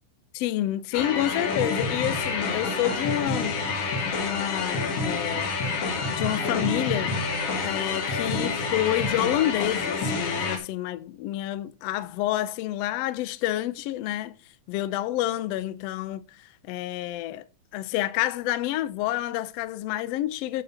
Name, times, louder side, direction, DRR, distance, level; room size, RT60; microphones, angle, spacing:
voice 1, 0.3-3.6 4.0-5.5 6.1-7.2 7.6-14.3 14.7-17.4 17.7-20.6, left 14 dB, 80° left, 1.4 m, -29 dB
sound 1, 0.9-10.6, left 4 dB, 55° left, 2.1 m, -28 dB
9.5 x 5.3 x 5.4 m
omnidirectional pair, 3.6 m